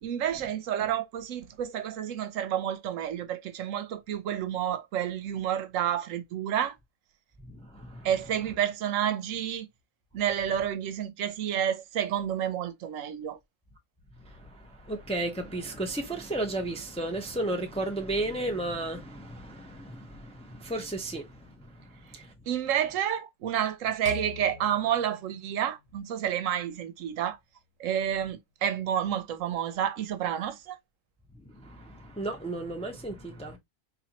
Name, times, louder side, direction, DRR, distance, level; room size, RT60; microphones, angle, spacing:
voice 1, 0.0-6.7 8.0-9.7 10.1-13.4 22.5-27.4 27.8-30.8, right 10 dB, 80° right, 1.0 m, -30 dB
voice 2, 7.4-8.1 14.2-22.3 31.4-33.6, right 2 dB, 5° left, 0.5 m, -34 dB
sound 1, 24.1-26.4, left 8 dB, 70° left, 1.0 m, -43 dB
4.2 x 2.6 x 2.9 m
omnidirectional pair, 1.4 m